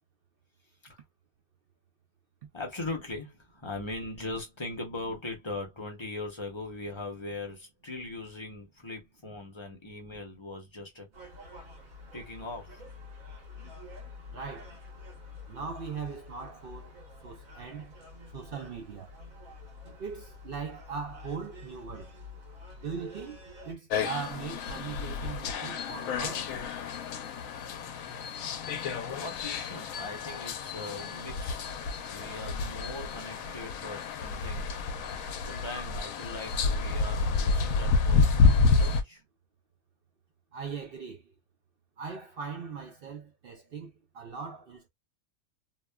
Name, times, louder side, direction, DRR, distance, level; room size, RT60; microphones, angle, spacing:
voice 1, 2.5-11.1 12.1-12.9 29.2-31.7 32.1-34.7 35.1-39.2, left 2 dB, 30° left, 0.6 m, -40 dB
Gull seagull, 11.1-23.8, left 3 dB, 85° right, 1.4 m, -48 dB
voice 2, 14.3-14.7 15.5-16.9 17.2-17.9 18.3-19.1 20.0-22.1 22.8-23.4 23.6-26.6 40.5-41.2 42.0-44.9, right 5 dB, 65° right, 0.6 m, -39 dB
sound 1, 23.9-39.0, left 4 dB, 85° left, 1.0 m, -29 dB
2.9 x 2.2 x 2.2 m
omnidirectional pair, 1.4 m